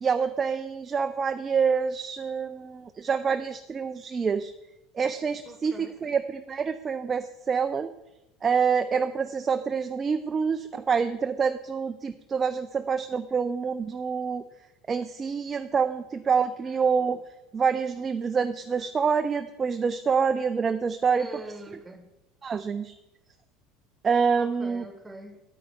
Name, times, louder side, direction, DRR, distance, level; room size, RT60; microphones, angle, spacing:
voice 1, 0.0-4.5 4.9-7.9 8.4-14.4 14.9-17.2 17.5-21.3 22.4-22.9 24.0-24.9, right 6 dB, 30° right, 9 dB, 0.4 m, -26 dB
voice 2, 5.4-6.0 18.2-18.4 21.2-22.1 24.4-25.4, right 2 dB, 10° right, 8 dB, 1.5 m, -43 dB
8.8 x 8.8 x 4.8 m, 0.95 s
hypercardioid pair, 70°, 0 cm